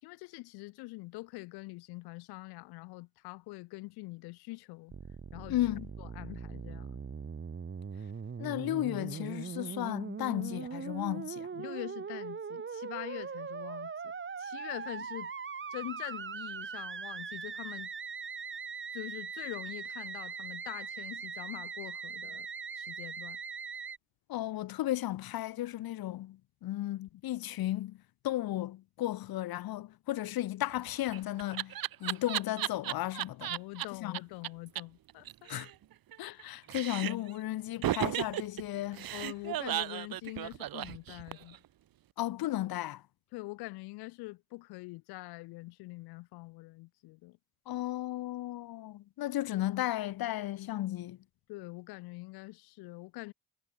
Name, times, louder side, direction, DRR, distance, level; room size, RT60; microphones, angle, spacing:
voice 1, 0.0-4.9 5.3-5.6 6.0-7.0 11.6-14.1 14.4-15.3 15.7-17.9 18.9-22.5 22.7-23.4 33.5-35.5 39.1-41.6 43.3-47.4 51.5-53.3, left 22 dB, 85° left, 5.7 m, -44 dB
Musical instrument, 4.9-24.0, right 6 dB, 30° right, 1.7 m, -41 dB
voice 2, 5.5-5.9 8.4-11.6 24.3-28.0 28.2-33.5 34.0-34.2 35.5-35.7 36.2-39.1 42.2-43.0 47.7-51.2, left 14 dB, 70° left, 1.8 m, -34 dB
Laughter, 30.7-33.8 34.1-34.2 34.4-34.5 34.8-34.9 35.1-36.4 36.7-37.3 37.8-41.6, right 13 dB, 65° right, 2.0 m, -35 dB
supercardioid pair, 70°, 37 cm